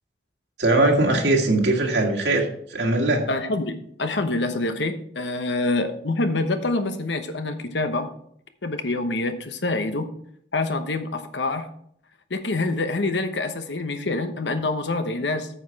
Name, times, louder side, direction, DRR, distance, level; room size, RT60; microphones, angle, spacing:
voice 1, 0.6-3.3, right 2 dB, 80° right, 1 dB, 2.0 m, -20 dB
voice 2, 3.3-3.7 4.0-8.1 8.6-10.1 10.5-11.7 12.3-15.5, left 2 dB, 85° left, 8 dB, 1.0 m, -26 dB
9.2 x 6.7 x 4.6 m, 0.66 s
head